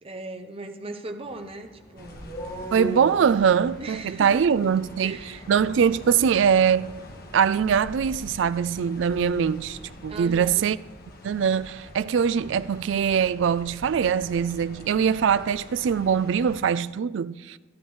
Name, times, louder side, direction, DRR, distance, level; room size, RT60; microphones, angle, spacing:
voice 1, 0.0-2.3 3.8-4.7 5.0-5.5 10.1-10.7, right 2 dB, 30° right, 0.8 m, -38 dB
sound 1, 1.2-9.2, equal, 25° left, 3.5 m, -41 dB
sound 2, 2.0-16.6, left 1 dB, 50° left, 1.3 m, -44 dB
voice 2, 2.7-5.2 5.5-7.0 7.3-10.8 11.2-17.6, right 7 dB, 75° right, 0.3 m, -22 dB
14.0 x 13.0 x 3.1 m
head